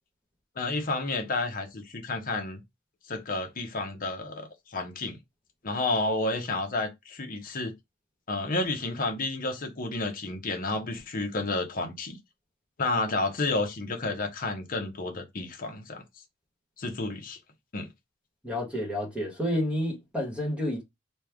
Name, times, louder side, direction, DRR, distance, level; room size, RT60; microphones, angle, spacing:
voice 1, 0.6-2.6 3.1-5.2 5.6-7.7 8.3-12.2 12.8-16.0 16.8-17.4 17.7-17.9, left 2 dB, 45° left, 0.8 m, -31 dB
voice 2, 18.4-20.8, equal, 5° right, 1.3 m, -30 dB
3.1 x 2.3 x 3.4 m
head